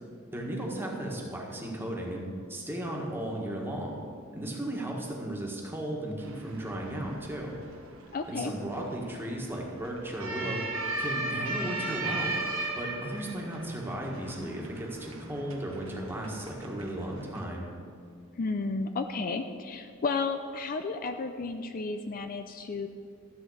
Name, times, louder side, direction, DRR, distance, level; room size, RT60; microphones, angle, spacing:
voice 1, 0.3-2.2 2.5-4.0 4.3-7.5 8.3-10.6 11.0-12.4 12.7-17.7, right 1 dB, 10° right, -2 dB, 1.6 m, -35 dB
sound 1, 6.2-17.4, right 2 dB, 80° right, 1.4 m, -37 dB
voice 2, 8.1-8.5 18.4-22.9, left 4 dB, 45° left, 8 dB, 0.4 m, -32 dB
13.0 x 7.7 x 4.8 m, 2.2 s
head